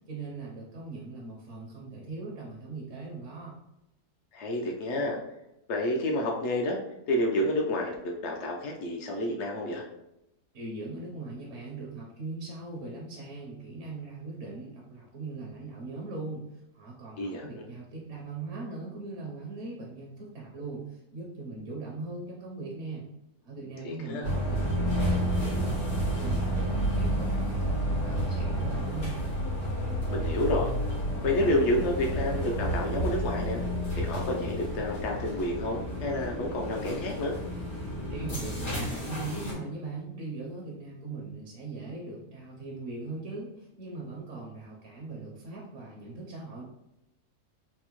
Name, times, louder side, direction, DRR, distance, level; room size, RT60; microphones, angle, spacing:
voice 1, 0.1-3.6 10.5-23.0 23.4-29.2 38.1-46.6, right 3 dB, 60° right, -3 dB, 0.9 m, -40 dB
voice 2, 4.3-5.2 5.7-6.8 7.1-9.8 17.2-17.6 23.8-24.3 30.1-30.7 31.2-33.6 33.9-37.4, left 1 dB, 75° left, 0 dB, 0.6 m, -29 dB
sound 1, 24.2-39.5, equal, 90° left, 2.1 m, -30 dB
4.3 x 2.0 x 2.9 m, 0.88 s
omnidirectional pair, 1.7 m